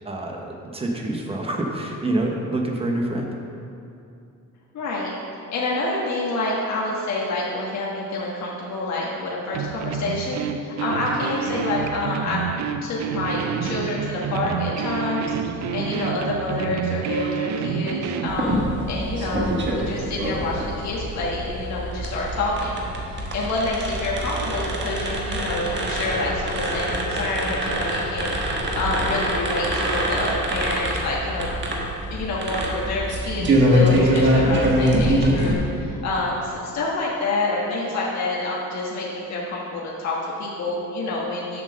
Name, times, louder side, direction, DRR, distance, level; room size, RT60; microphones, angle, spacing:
voice 1, 0.0-0.5 0.7-3.3, right 1 dB, 20° right, 0 dB, 1.0 m, -26 dB
voice 2, 4.7-5.1 5.5-12.4 12.8-31.5 32.1-41.6, left 2 dB, 60° left, -4 dB, 1.4 m, -28 dB
sound 1, 9.5-18.4, right 7 dB, 60° right, 0.5 m, -28 dB
sound 2, 18.3-35.5, equal, 35° right, 1.3 m, -24 dB
7.6 x 6.2 x 6.4 m, 2.6 s
cardioid pair, 170°, 32 cm